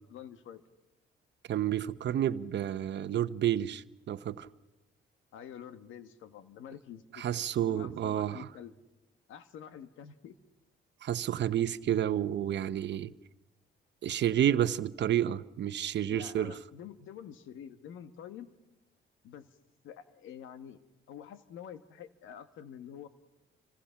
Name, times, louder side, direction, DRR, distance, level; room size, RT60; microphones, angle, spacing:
voice 1, 0.1-0.6 5.3-7.3 7.6-8.7 9.3-10.4 16.1-18.5 19.2-19.5 19.8-20.8 21.1-23.1, left 9 dB, 85° left, 1.5 m, -47 dB
voice 2, 1.5-4.5 7.1-8.5 11.0-13.1 14.0-16.5, right 11 dB, 65° right, 0.9 m, -30 dB
29.5 x 25.5 x 5.8 m
cardioid pair, 90°, 20 cm